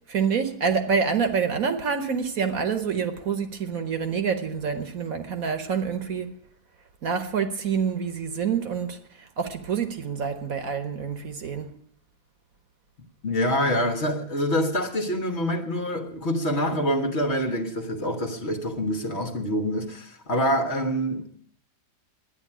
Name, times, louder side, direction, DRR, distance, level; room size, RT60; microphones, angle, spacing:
voice 1, 0.1-6.3 7.0-11.7, right 6 dB, 60° right, 1.5 m, -27 dB
voice 2, 13.2-21.4, equal, 45° left, 1.4 m, -26 dB
11.0 x 9.6 x 9.9 m
omnidirectional pair, 1.8 m